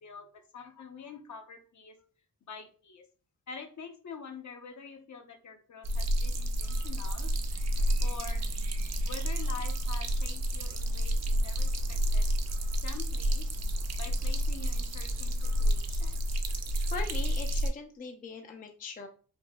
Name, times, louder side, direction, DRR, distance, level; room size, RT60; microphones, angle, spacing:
voice 1, 0.0-2.0 2.4-3.1 3.5-7.3 8.0-8.4 9.0-12.3 12.8-13.5 14.0-16.4, left 6 dB, 55° left, 6 dB, 0.7 m, -46 dB
sound 1, 5.8-17.7, equal, 45° right, 0.5 m, -30 dB
voice 2, 16.9-19.1, left 4 dB, 25° left, 4 dB, 0.4 m, -40 dB
5.1 x 2.6 x 2.2 m, 0.40 s
wide cardioid pair, 125°, 36 cm